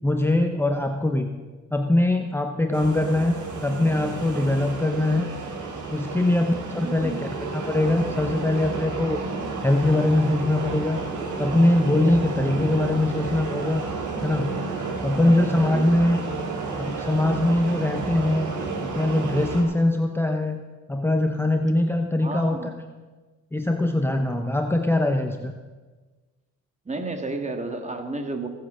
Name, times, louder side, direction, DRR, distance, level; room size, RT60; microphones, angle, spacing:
voice 1, 0.0-1.3 1.7-3.3 3.6-5.3 5.9-7.2 7.5-9.2 9.6-11.0 11.4-13.8 14.2-14.5 15.0-16.2 16.8-18.5 18.8-20.6 20.9-22.7 23.5-25.5, left 1 dB, 10° left, 5 dB, 0.9 m, -22 dB
sound 1, 2.7-19.6, right 4 dB, 80° right, 3.1 m, -31 dB
voice 2, 6.8-7.3 15.1-15.9 22.2-22.8 26.9-28.5, right 3 dB, 25° right, 5 dB, 1.9 m, -32 dB
17.5 x 7.8 x 6.3 m, 1.3 s
cardioid pair, 90°, 30 cm